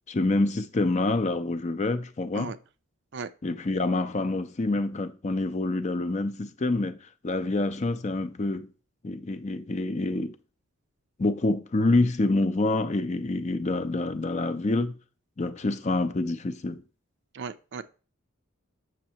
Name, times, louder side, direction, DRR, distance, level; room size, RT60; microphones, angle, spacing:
voice 1, 0.1-2.5 3.4-8.7 9.0-10.4 11.2-15.0 15.4-16.8, left 2 dB, 35° left, 0.5 m, -27 dB
voice 2, 17.3-17.8, right 5 dB, 55° right, 0.5 m, -36 dB
7.5 x 6.2 x 2.9 m
head